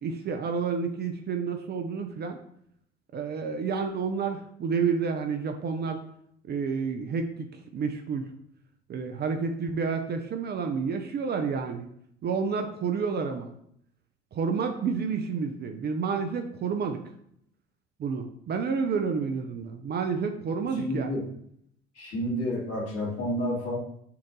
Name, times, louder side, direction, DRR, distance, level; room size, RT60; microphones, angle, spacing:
voice 1, 0.0-2.4 3.1-6.0 6.5-8.3 8.9-11.9 12.2-13.5 14.3-17.0 18.0-21.2, right 5 dB, 35° right, 5 dB, 0.5 m, -30 dB
voice 2, 20.7-21.2 22.0-23.8, equal, 50° left, -3 dB, 1.8 m, -30 dB
5.5 x 2.6 x 3.7 m, 0.70 s
figure-of-eight pair, 60°, 31 cm